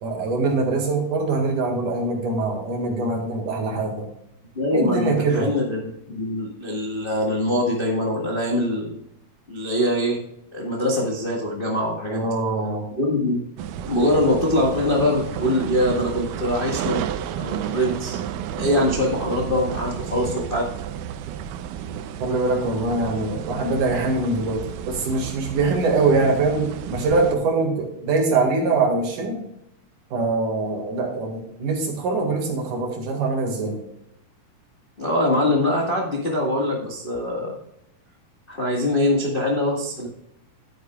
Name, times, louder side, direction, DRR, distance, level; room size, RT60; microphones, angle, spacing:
voice 1, 0.0-4.1 4.7-5.5 12.1-12.8 22.2-29.4 30.1-33.8, right 3 dB, 70° right, 2 dB, 3.3 m, -23 dB
voice 2, 4.5-9.0 9.5-10.2 10.5-12.3 13.0-13.4 13.8-17.0 17.4-18.2 18.6-20.7 35.0-37.5 38.5-40.1, left 1 dB, 30° left, -2 dB, 0.9 m, -23 dB
sound 1, 13.6-27.4, right 10 dB, 90° right, 2.2 m, -32 dB
11.0 x 9.3 x 2.3 m, 0.79 s
omnidirectional pair, 3.8 m